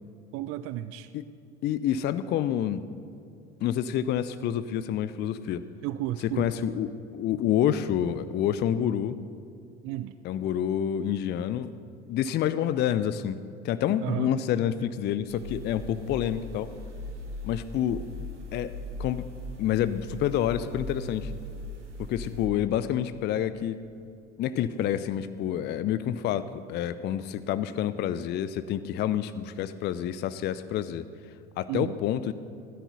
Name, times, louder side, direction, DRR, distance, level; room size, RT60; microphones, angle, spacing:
voice 1, 0.3-1.1 5.8-6.5 9.8-10.2 14.0-14.3 31.7-32.0, right 14 dB, 40° right, 13 dB, 0.5 m, -32 dB
voice 2, 1.6-2.8 3.6-5.6 6.2-9.2 10.2-11.7 12.1-13.4 13.6-16.7 17.4-18.0 18.5-18.7 19.0-19.2 19.6-21.4 22.0-23.8 24.4-31.0 31.6-32.3, left 10 dB, 30° left, 14 dB, 0.5 m, -28 dB
sound 1, 15.3-22.5, left 1 dB, 80° right, 1.4 m, -39 dB
16.0 x 10.0 x 6.7 m, 2.5 s
figure-of-eight pair, 70°, 35 cm